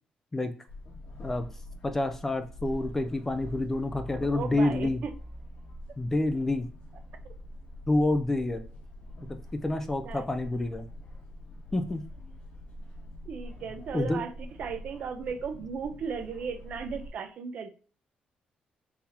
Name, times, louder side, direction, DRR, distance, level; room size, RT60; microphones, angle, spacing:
sound 1, 0.7-17.1, left 1 dB, 40° left, 1.5 m, -45 dB
voice 1, 1.8-5.0 6.0-6.7 7.9-8.6 9.3-10.9 11.7-12.0 13.9-14.2, left 2 dB, 10° left, 8 dB, 0.3 m, -28 dB
voice 2, 4.2-5.1 7.2-7.3 10.0-10.2 13.3-14.3 14.6-17.7, right 6 dB, 50° right, 8 dB, 0.6 m, -36 dB
4.0 x 2.8 x 4.1 m, 0.39 s
cardioid pair, 175°, 3 cm